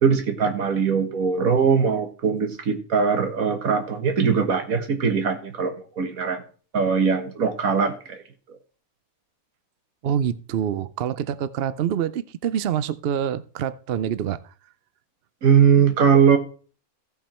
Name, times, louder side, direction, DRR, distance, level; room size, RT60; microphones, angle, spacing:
voice 1, 0.0-6.4 6.7-8.2 15.4-16.4, right 6 dB, 75° right, 1.8 m, -21 dB
voice 2, 10.0-14.4, right 9 dB, 60° right, 0.6 m, -26 dB
15.5 x 5.7 x 4.3 m
omnidirectional pair, 1.5 m